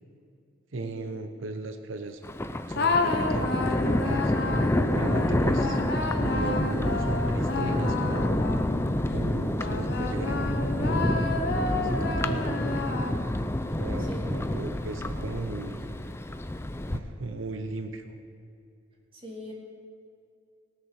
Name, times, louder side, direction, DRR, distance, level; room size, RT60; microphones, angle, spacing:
voice 1, 0.7-2.2 2.7-4.3 4.9-5.8 6.2-8.4 9.1-11.2 11.7-12.9 13.8-16.0 16.9-18.2, right 2 dB, 90° right, 7 dB, 0.8 m, -36 dB
Thunder, 2.2-17.0, left 1 dB, 15° left, 0.5 m, -28 dB
sound 1, 2.7-9.0 9.6-13.5, left 3 dB, 60° left, 1.0 m, -31 dB
voice 2, 19.1-19.5, equal, 30° right, -2 dB, 2.5 m, -42 dB
18.5 x 6.9 x 6.4 m, 2.5 s
head